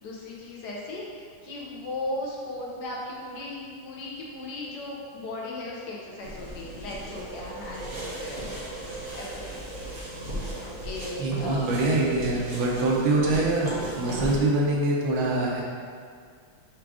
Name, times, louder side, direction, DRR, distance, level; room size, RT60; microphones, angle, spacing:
voice 1, 0.0-8.4 9.1-9.6 10.6-11.8 13.1-13.3, left 2 dB, 70° left, -4 dB, 1.0 m, -37 dB
sound 1, 6.2-14.4, right 1 dB, 35° right, 0.9 m, -37 dB
voice 2, 11.2-15.6, right 2 dB, 80° right, -3 dB, 1.5 m, -24 dB
4.8 x 2.4 x 4.7 m, 2.1 s
omnidirectional pair, 2.2 m